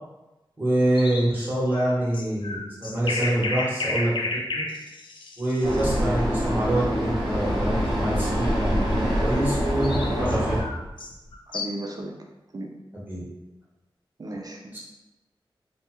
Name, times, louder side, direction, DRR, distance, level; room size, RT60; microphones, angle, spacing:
voice 1, 0.6-4.1 4.5-4.6 5.4-10.5 12.9-13.2 14.7-14.8, right 1 dB, 20° right, -8 dB, 1.2 m, -25 dB
sound 1, 0.9-6.0 9.5-11.9, left 2 dB, 65° left, 0.4 m, -32 dB
Vehicle, 5.6-10.6, equal, 5° left, 1.1 m, -25 dB
voice 2, 9.8-10.3 11.5-12.1 12.5-12.7 14.2-14.7, right 1 dB, 45° right, 1 dB, 0.5 m, -35 dB
3.2 x 2.2 x 3.0 m, 1.0 s
wide cardioid pair, 95°, 9 cm